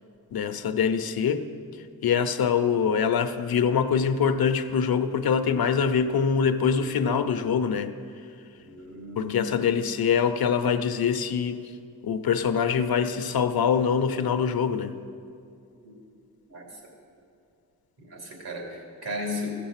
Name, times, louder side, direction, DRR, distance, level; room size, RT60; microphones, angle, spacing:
voice 1, 0.3-1.4 2.0-7.9 9.2-11.6 12.0-14.9, left 6 dB, 75° left, 10 dB, 0.7 m, -24 dB
voice 2, 8.6-9.5 16.5-16.8 18.1-19.6, left 2 dB, 85° right, -1 dB, 3.0 m, -35 dB
15.0 x 6.8 x 7.3 m, 2.6 s
wide cardioid pair, 90°, 37 cm